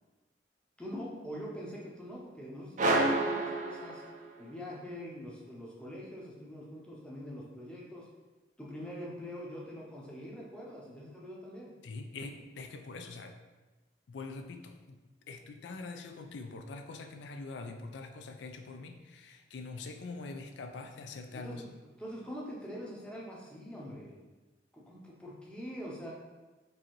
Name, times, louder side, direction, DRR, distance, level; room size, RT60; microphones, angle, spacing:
voice 1, 0.8-4.0 4.4-8.1 8.6-11.7 21.3-24.2 24.7-26.1, equal, 5° left, -4 dB, 0.6 m, -44 dB
sound 1, 2.8-4.5, right 2 dB, 40° right, 0.4 m, -29 dB
voice 2, 11.8-13.3 14.1-15.0 15.3-21.6, left 3 dB, 75° left, 5 dB, 0.4 m, -44 dB
4.5 x 2.6 x 3.0 m, 1.2 s
head